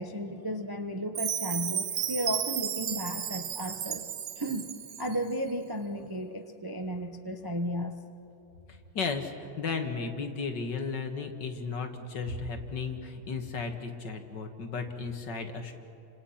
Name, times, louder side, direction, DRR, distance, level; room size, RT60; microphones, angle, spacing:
voice 1, 0.0-4.1 4.4-8.0, equal, 25° right, 5 dB, 0.4 m, -34 dB
Chime, 1.1-5.2, right 9 dB, 65° right, 0.8 m, -33 dB
voice 2, 8.7-15.7, left 4 dB, 55° left, 5 dB, 2.2 m, -34 dB
30.0 x 26.0 x 5.8 m, 2.9 s
omnidirectional pair, 2.4 m